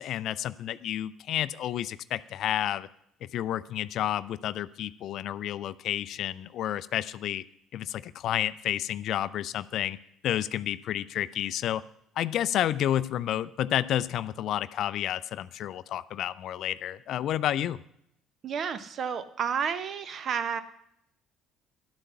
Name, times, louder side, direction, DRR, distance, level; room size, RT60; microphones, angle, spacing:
voice 1, 0.0-2.9 3.2-7.4 7.7-10.0 10.2-11.8 12.2-17.8, left 11 dB, 55° left, 17 dB, 0.4 m, -30 dB
voice 2, 18.4-20.6, right 7 dB, 50° right, 12 dB, 0.9 m, -31 dB
11.5 x 8.2 x 5.7 m, 0.75 s
figure-of-eight pair, 50°, 0 cm